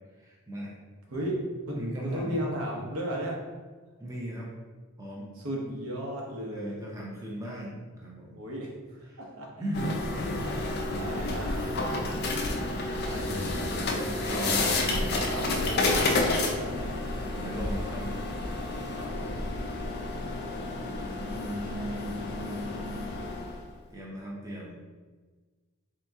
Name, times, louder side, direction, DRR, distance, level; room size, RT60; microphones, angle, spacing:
voice 1, 0.2-0.7 1.7-2.4 4.0-4.5 5.0-5.3 6.5-8.4 9.0-9.2 9.6-10.0 10.5-10.9 14.0-14.8 17.2-18.1 21.1-23.1 23.9-24.8, equal, 15° right, -4 dB, 0.6 m, -37 dB
voice 2, 1.7-3.4 5.4-6.8 8.3-8.7 9.2-9.5 10.0-10.3 11.0-11.7 13.0-16.9 18.6-19.4, equal, 75° right, -1 dB, 0.9 m, -35 dB
sound 1, 9.7-23.7, left 2 dB, 45° left, 0.4 m, -30 dB
3.9 x 2.9 x 3.5 m, 1.4 s
head